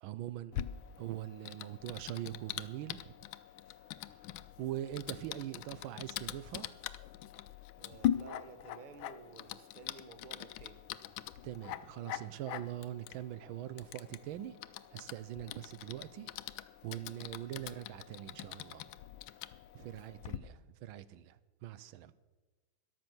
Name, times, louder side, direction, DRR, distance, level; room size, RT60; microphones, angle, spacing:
voice 1, 0.0-0.7 1.0-3.2 4.6-6.7 11.4-14.6 14.9-16.3 16.8-18.9 19.7-22.1, right 12 dB, 90° right, 1.4 m, -42 dB
Typing, 0.5-20.4, left 12 dB, 80° left, 1.3 m, -42 dB
voice 2, 7.8-10.9 19.8-20.2, right 4 dB, 35° right, 0.8 m, -53 dB
14.0 x 10.5 x 6.1 m
omnidirectional pair, 2.2 m